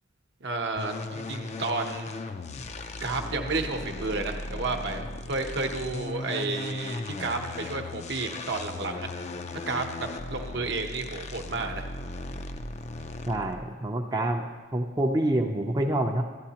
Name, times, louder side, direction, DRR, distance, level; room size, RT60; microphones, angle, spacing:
voice 1, 0.4-2.1 3.0-9.1 9.5-11.9, right 3 dB, 60° right, 4 dB, 0.8 m, -31 dB
sound 1, 0.8-13.7, left 2 dB, 35° left, 0.4 m, -37 dB
voice 2, 13.3-14.4 14.7-16.2, right 1 dB, 20° right, 1 dB, 0.5 m, -27 dB
13.0 x 9.9 x 2.9 m, 1.4 s
head